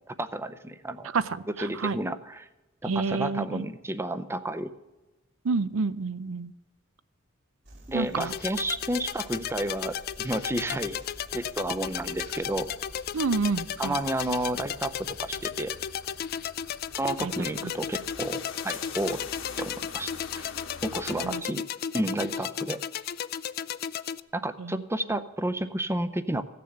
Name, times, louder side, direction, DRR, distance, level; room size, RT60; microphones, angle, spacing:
voice 1, 0.1-1.1 1.5-2.5 2.8-4.7 7.9-11.0 11.3-12.7 13.8-15.7 17.0-19.2 19.6-20.5 20.8-21.6 21.9-22.8 24.3-26.5, right 1 dB, 15° right, 11 dB, 0.6 m, -31 dB
voice 2, 1.1-2.0 2.9-3.6 5.4-6.5 7.9-8.3 13.1-14.0 17.2-17.3 21.2-21.4 24.6-24.8, right 4 dB, 80° right, 16 dB, 0.6 m, -29 dB
sound 1, 7.6-15.5, right 1 dB, 65° right, 3.2 m, -50 dB
sound 2, 8.2-24.2, left 9 dB, 50° left, 0.4 m, -34 dB
sound 3, 11.9-21.4, left 5 dB, 70° left, 1.3 m, -45 dB
15.5 x 6.9 x 7.9 m, 1.0 s
head